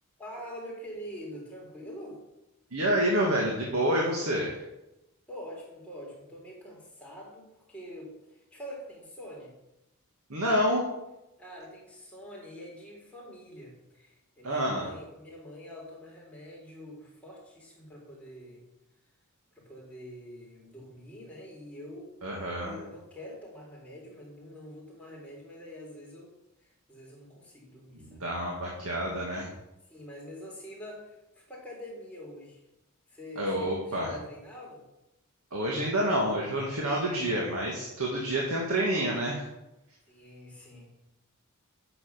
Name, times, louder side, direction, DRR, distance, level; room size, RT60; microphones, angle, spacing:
voice 1, 0.2-2.2 5.3-9.5 11.4-18.6 19.5-22.1 22.6-28.2 29.9-32.6 33.1-34.8 40.1-41.0, equal, 5° left, -4 dB, 3.7 m, -45 dB
voice 2, 2.7-4.6 10.3-10.9 14.4-14.9 22.2-22.8 28.0-29.5 33.4-34.1 35.5-39.5, right 1 dB, 75° right, -2 dB, 2.0 m, -28 dB
9.2 x 7.1 x 7.0 m, 0.92 s
head